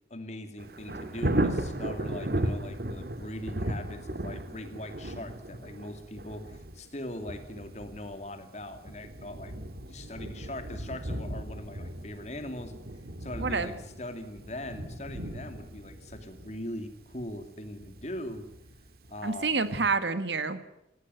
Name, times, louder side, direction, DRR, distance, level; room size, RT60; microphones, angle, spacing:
voice 1, 0.1-9.5 9.8-12.7 13.2-13.7 14.0-18.5 19.1-19.7, left 1 dB, 40° left, 8 dB, 2.5 m, -41 dB
Thunder, 0.6-19.4 19.8-19.9, right 1 dB, 60° right, 1.8 m, -36 dB
voice 2, 19.2-20.6, right 4 dB, 85° right, 12 dB, 1.7 m, -28 dB
18.0 x 17.5 x 9.4 m, 0.83 s
head